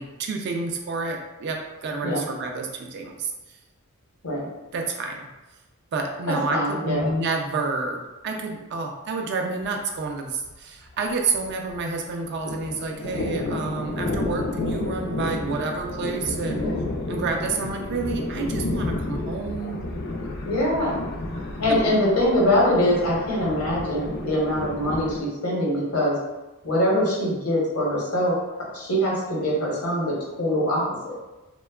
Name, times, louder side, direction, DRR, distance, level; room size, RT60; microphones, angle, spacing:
voice 1, 0.0-3.3 4.7-5.3 5.9-16.7 17.1-19.8 21.3-21.8, right 3 dB, 50° right, 2 dB, 0.3 m, -29 dB
voice 2, 6.3-7.1 16.5-16.7 20.5-21.0 21.6-26.2 26.6-28.4 28.7-31.1, left 1 dB, 80° left, -4 dB, 0.9 m, -23 dB
Thunder, 9.6-9.8 10.1-10.2 10.5-12.0 12.2-25.2, left 2 dB, 50° left, 0.3 m, -31 dB
2.8 x 2.2 x 2.2 m, 1.1 s
head